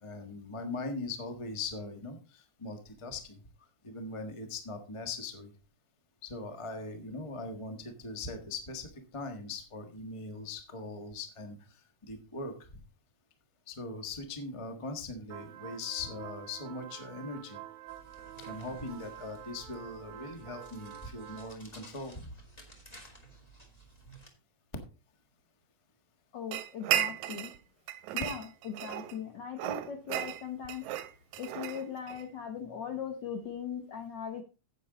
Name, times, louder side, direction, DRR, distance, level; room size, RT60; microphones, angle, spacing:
voice 1, 0.0-3.4 3.8-5.5 6.2-11.8 12.1-12.6 13.7-17.6 18.4-22.3, left 3 dB, 35° left, 6 dB, 0.4 m, -40 dB
sound 1, 15.3-21.5, right 12 dB, 65° right, 1.6 m, -48 dB
sound 2, 17.9-24.3, right 2 dB, 15° left, 1.7 m, -54 dB
voice 2, 26.3-27.5 28.1-30.8 31.4-34.4, left 8 dB, 70° left, 6 dB, 1.0 m, -39 dB
sound 3, 26.5-27.6 27.9-29.2 29.6-32.3, right 12 dB, 85° right, 2.0 m, -34 dB
9.9 x 8.5 x 3.9 m, 0.33 s
omnidirectional pair, 3.3 m